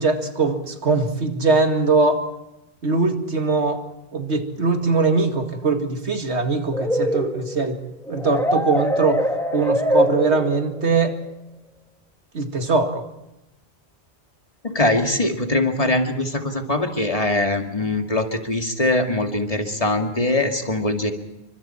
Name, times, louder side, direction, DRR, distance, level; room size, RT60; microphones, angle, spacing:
voice 1, 0.0-2.2 2.8-3.8 4.1-7.8 8.1-9.3 9.5-11.2 12.3-13.0, right 3 dB, 80° right, 5 dB, 2.5 m, -21 dB
sound 1, 6.7-10.8, equal, 5° left, 2.1 m, -23 dB
voice 2, 14.6-21.1, left 2 dB, 35° left, 3 dB, 2.3 m, -22 dB
29.0 x 25.0 x 4.5 m, 0.93 s
omnidirectional pair, 1.1 m